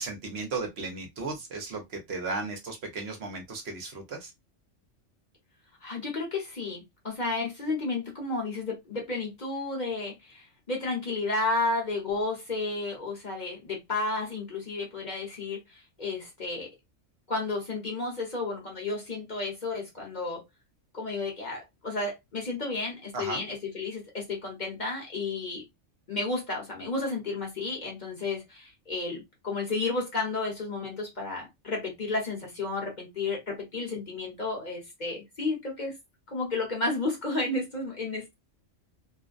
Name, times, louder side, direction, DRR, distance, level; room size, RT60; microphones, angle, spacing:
voice 1, 0.0-4.3 23.1-23.4, right 3 dB, 60° right, 0.9 m, -35 dB
voice 2, 5.8-16.7 17.3-20.4 20.9-25.7 26.1-35.9 36.3-38.3, left 3 dB, 40° left, 1.0 m, -32 dB
2.5 x 2.1 x 2.4 m
omnidirectional pair, 1.3 m